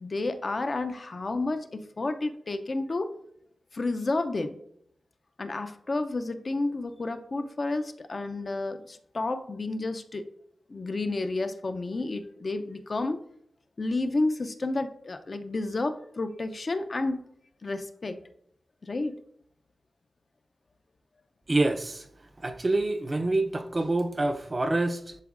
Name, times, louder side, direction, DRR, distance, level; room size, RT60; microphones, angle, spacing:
voice 1, 0.0-3.1 3.7-4.6 5.4-10.3 10.7-13.2 13.8-17.2 17.6-18.2 18.8-19.2, left 2 dB, 40° left, 0.4 m, -31 dB
voice 2, 21.5-22.0 22.4-25.2, right 2 dB, 30° right, 0.5 m, -26 dB
10.5 x 3.9 x 2.4 m
wide cardioid pair, 110°, 0 cm